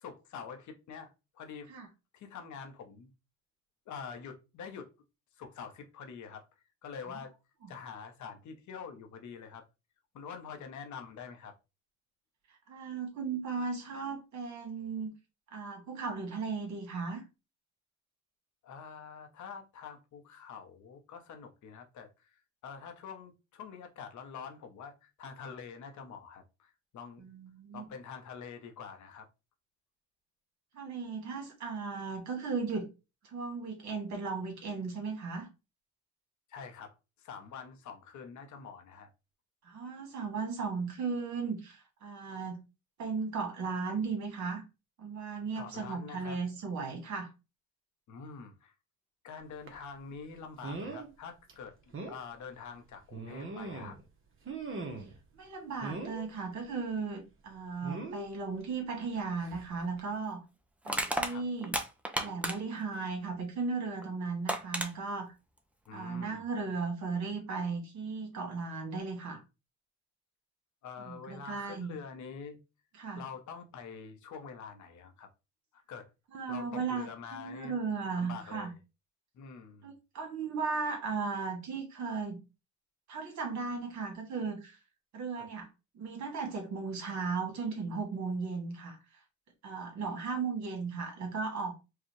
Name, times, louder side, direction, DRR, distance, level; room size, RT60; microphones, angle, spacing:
voice 1, 0.0-1.7 2.1-3.1 3.9-4.9 5.4-6.5 6.8-7.3 7.7-9.6 10.1-11.5 18.6-27.2 27.7-29.3 36.5-39.1 45.6-46.4 48.1-48.7 49.2-51.8 52.1-54.0 61.3-61.4 65.9-66.4 70.8-72.6 73.2-75.3 75.7-76.1 76.5-77.8 78.2-78.7 79.3-79.9 85.4-85.5, left 6 dB, 70° left, 1.0 m, -46 dB
voice 2, 12.7-15.1 15.5-17.2 27.2-27.9 30.7-32.9 33.2-35.5 39.6-42.6 43.0-44.6 45.0-47.3 55.3-60.4 60.8-61.8 62.2-65.3 65.9-69.4 71.1-71.9 73.0-73.2 76.3-78.7 79.8-82.4 83.1-84.8 85.1-85.7 85.9-89.0 89.6-91.7, right 4 dB, 70° right, 1.8 m, -36 dB
sound 1, 49.7-49.8 50.6-51.1 51.5-51.6 51.9-52.2 53.1-54.0 54.4-55.2 55.8-56.3 57.8-58.2 59.4-59.6 60.0-60.1, right 3 dB, 45° right, 1.1 m, -40 dB
Crushing, 59.5-59.6 60.9-62.8 64.0-64.1 64.5-64.9, right 1 dB, 5° right, 0.6 m, -33 dB
4.8 x 2.4 x 3.2 m
cardioid pair, 90°, 30 cm